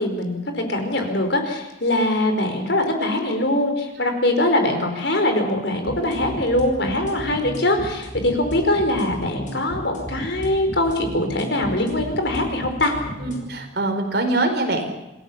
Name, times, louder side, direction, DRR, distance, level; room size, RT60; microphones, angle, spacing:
voice 1, 0.0-12.9, left 1 dB, 65° left, 5 dB, 4.8 m, -22 dB
sound 1, 5.9-13.4, equal, 40° left, 5.7 m, -34 dB
voice 2, 13.2-14.9, right 2 dB, 55° right, 4 dB, 4.6 m, -23 dB
27.5 x 17.0 x 7.3 m, 0.98 s
head